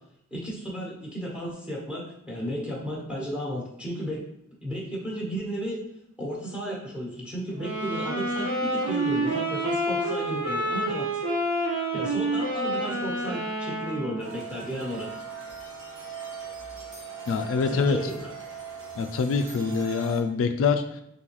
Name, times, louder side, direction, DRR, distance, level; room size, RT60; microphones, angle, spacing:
voice 1, 0.3-4.2 4.6-5.8 6.2-11.1 11.9-15.1 17.7-18.3, equal, 5° right, -4 dB, 1.2 m, -33 dB
sound 1, 7.5-14.4, right 1 dB, 85° right, 1.3 m, -28 dB
sound 2, 14.2-20.2, right 5 dB, 60° right, 1.1 m, -40 dB
voice 2, 17.3-18.0 19.0-20.8, left 5 dB, 65° left, 7 dB, 0.3 m, -25 dB
3.8 x 3.7 x 3.0 m, 0.78 s
head